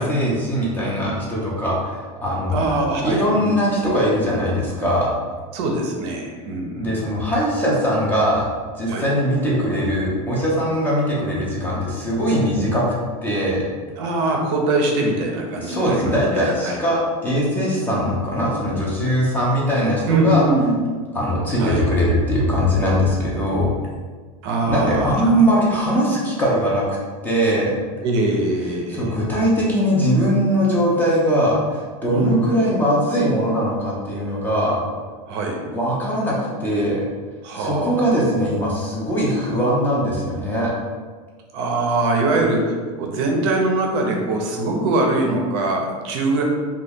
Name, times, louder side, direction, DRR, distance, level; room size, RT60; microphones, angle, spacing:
voice 1, 0.0-2.7 3.0-5.1 6.8-8.5 8.7-12.8 13.2-13.6 15.6-20.5 21.1-23.7 24.7-27.0 27.2-27.8 28.9-34.8 35.7-37.0 37.5-40.7, equal, 10° left, -5 dB, 0.4 m, -21 dB
voice 2, 2.5-3.6 5.5-6.9 8.9-9.1 14.0-16.8 20.1-20.8 21.6-21.8 24.4-25.3 28.0-29.1 32.1-32.4 32.7-32.8 35.3-35.6 37.4-38.0 41.5-46.4, right 2 dB, 45° right, 1 dB, 0.5 m, -22 dB
2.8 x 2.3 x 3.4 m, 1.5 s
supercardioid pair, 160°, 19 cm